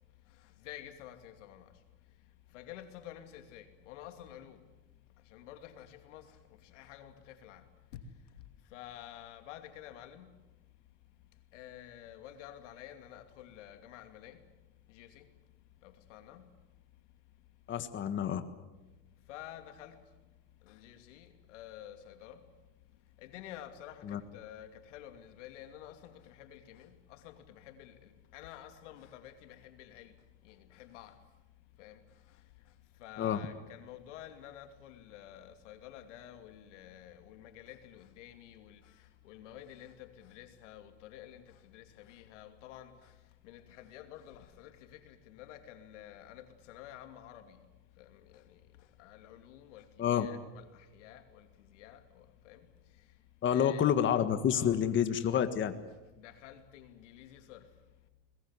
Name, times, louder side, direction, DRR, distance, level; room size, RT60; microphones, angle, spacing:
voice 1, 0.4-1.7 2.5-4.6 5.2-7.6 7.9-8.0 8.7-10.3 11.5-14.4 14.9-15.3 15.8-16.5 19.3-20.0 20.6-22.4 23.2-30.2 30.4-31.2 31.8-32.0 32.3-32.4 33.0-43.2 43.4-47.6 48.0-52.7 53.5-53.9 54.5-54.8 56.2-57.7, left 11 dB, 85° left, 2.8 m, -50 dB
voice 2, 17.7-18.4 24.1-24.2 33.2-33.4 50.0-50.3 53.4-55.7, left 9 dB, 35° left, 1.6 m, -28 dB
23.0 x 21.0 x 9.7 m
supercardioid pair, 125°, 35 cm